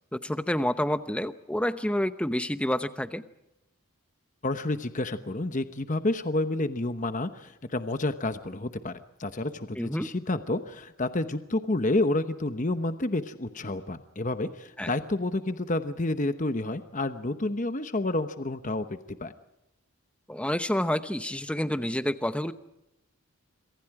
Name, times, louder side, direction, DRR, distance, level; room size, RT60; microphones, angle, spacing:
voice 1, 0.1-3.2 9.7-10.1 14.8-14.9 20.3-22.5, left 1 dB, 5° left, 11 dB, 0.9 m, -28 dB
voice 2, 4.4-19.3, left 2 dB, 35° left, 9 dB, 0.9 m, -29 dB
27.5 x 24.5 x 4.8 m, 0.88 s
head